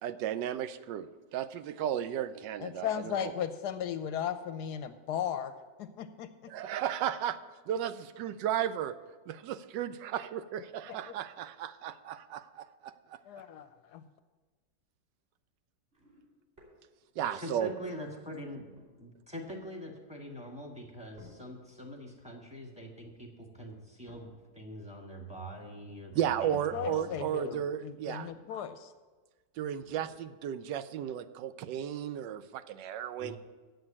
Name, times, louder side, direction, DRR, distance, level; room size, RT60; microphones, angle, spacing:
voice 1, 0.0-3.3 6.5-7.4 7.7-8.9 9.3-13.2 17.2-17.7 26.1-28.3 29.6-33.4, right 10 dB, 80° right, 13 dB, 1.2 m, -34 dB
voice 2, 2.6-5.5 5.8-6.5 10.9-11.0 13.3-14.0 17.2-17.3 26.7-28.9, left 9 dB, 75° left, 11 dB, 1.0 m, -36 dB
sound 1, 15.9-17.3 17.8-19.2 20.0-20.3 21.1-21.8 23.1-23.3 24.0-24.7 25.5-28.7 29.0-29.1 29.8-30.5 31.4-31.5, left 2 dB, 30° right, 3.5 m, -60 dB
voice 3, 17.3-18.6 19.0-27.2 33.2-33.4, equal, 5° right, -1 dB, 1.3 m, -44 dB
7.9 x 7.6 x 8.6 m, 1.3 s
omnidirectional pair, 2.0 m